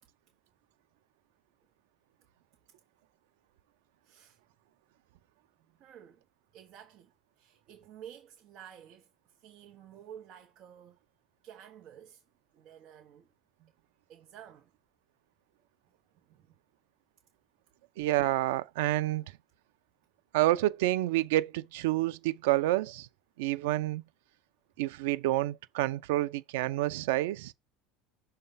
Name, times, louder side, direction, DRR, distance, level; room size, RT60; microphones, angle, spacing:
voice 1, 4.0-4.4 5.6-6.3 6.5-11.0 11.4-12.2 12.5-13.3 13.6-13.7 14.1-14.7 16.1-16.6, right 9 dB, 35° right, 1.1 m, -52 dB
voice 2, 18.0-19.2 20.3-23.1 23.4-24.0 24.8-27.5, right 16 dB, 85° right, 0.5 m, -28 dB
6.5 x 3.3 x 5.6 m
cardioid pair, 170°, 0 cm